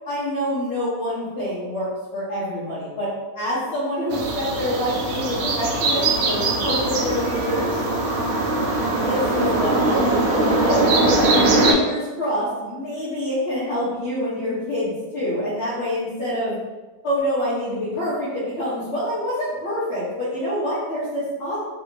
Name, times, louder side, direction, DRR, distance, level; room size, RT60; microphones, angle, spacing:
voice 1, 0.0-3.1 3.3-7.8 8.9-10.3 10.6-10.9 11.6-16.5 17.0-21.6, equal, 45° left, -11 dB, 1.0 m, -26 dB
sound 1, 4.1-11.7, right 2 dB, 70° right, 0.9 m, -21 dB
3.3 x 2.7 x 3.1 m, 1.2 s
omnidirectional pair, 1.9 m